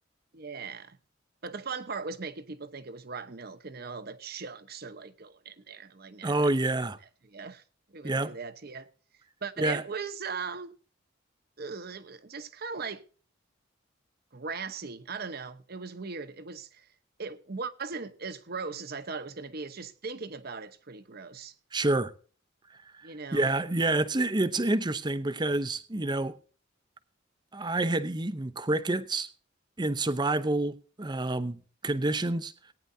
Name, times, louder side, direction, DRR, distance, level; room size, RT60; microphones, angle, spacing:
voice 1, 0.3-1.0 1.4-6.5 7.2-7.6 7.9-8.9 9.4-10.7 11.6-13.0 14.3-16.9 17.2-21.5 23.0-23.5, right 4 dB, 50° right, 1.0 m, -39 dB
voice 2, 6.2-7.0 8.0-8.3 9.6-9.8 21.7-22.1 23.3-26.4 27.5-29.3 29.8-31.6 31.8-32.5, right 2 dB, 20° right, 0.7 m, -28 dB
18.5 x 9.7 x 2.7 m
head